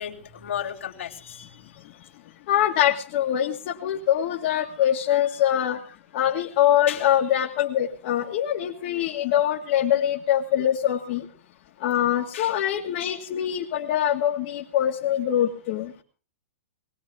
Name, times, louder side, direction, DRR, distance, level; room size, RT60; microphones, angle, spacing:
voice 1, 0.0-1.6 4.6-4.7 6.9-7.1 12.3-12.5, left 9 dB, 80° left, 0 dB, 3.4 m, -34 dB
voice 2, 2.5-5.8 6.1-11.3 11.8-15.9, left 11 dB, 50° left, -1 dB, 2.0 m, -23 dB
21.0 x 17.5 x 3.6 m, 0.40 s
hypercardioid pair, 130°, 7 cm